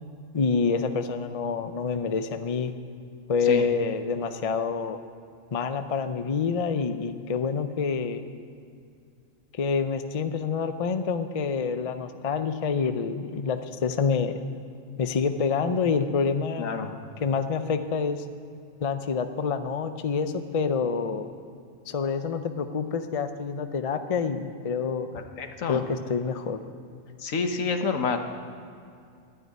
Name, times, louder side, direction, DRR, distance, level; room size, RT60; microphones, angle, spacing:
voice 1, 0.3-2.7 3.3-5.0 5.5-8.2 9.5-14.4 15.0-16.7 17.2-18.2 18.8-21.3 21.9-25.1 25.7-26.6, left 5 dB, 40° left, 9 dB, 0.5 m, -27 dB
voice 2, 16.6-16.9 25.1-25.8 27.2-28.2, left 5 dB, 75° left, 6 dB, 1.4 m, -28 dB
12.5 x 9.5 x 9.5 m, 2.3 s
omnidirectional pair, 1.4 m